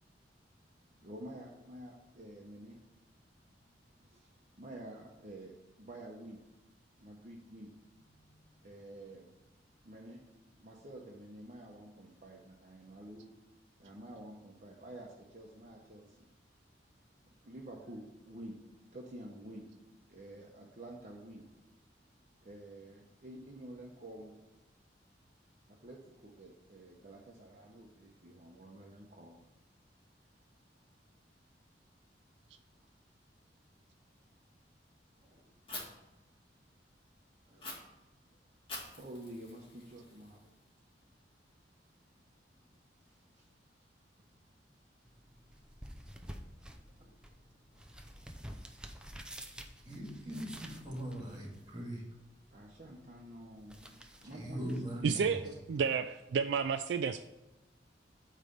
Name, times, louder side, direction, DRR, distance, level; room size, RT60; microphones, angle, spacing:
voice 1, 1.0-2.8 4.0-6.4 7.0-7.7 8.6-9.3 9.8-10.2 10.5-13.3 13.8-16.3 17.4-18.6 18.9-19.7 20.1-21.4 22.4-24.3 25.7-29.4 38.9-40.5 43.0-43.5 46.2-46.3 46.8-47.2 48.1-48.2 49.3-49.5 52.5-54.8 55.1-55.5, right 1 dB, 45° right, -2 dB, 0.9 m, -50 dB
voice 2, 8.1-8.6 35.3-35.4 37.5-37.6 49.9-52.0 54.2-55.3, right 1 dB, 25° right, -1 dB, 2.2 m, -41 dB
Fire, 35.7-35.8 37.6-37.7 38.7-40.6, left 2 dB, 30° left, 2.1 m, -46 dB
sound 1, 45.0-56.0, equal, 5° right, 0.6 m, -52 dB
voice 3, 55.0-55.4 55.7-57.2, right 6 dB, 70° right, 9 dB, 0.3 m, -31 dB
8.9 x 3.3 x 6.6 m, 1.0 s
head